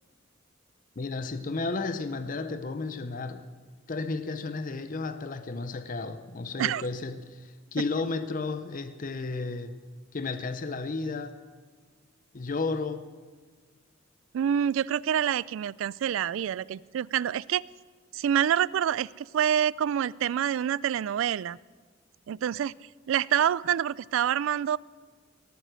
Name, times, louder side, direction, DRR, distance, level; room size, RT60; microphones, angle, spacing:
voice 1, 1.0-3.4 3.9-9.8 10.1-11.3 12.3-13.0, left 3 dB, 45° left, 0.7 m, -33 dB
voice 2, 14.3-17.6 18.1-21.6 22.3-22.7 23.1-24.8, right 9 dB, 85° right, 0.3 m, -27 dB
18.5 x 9.2 x 6.2 m
head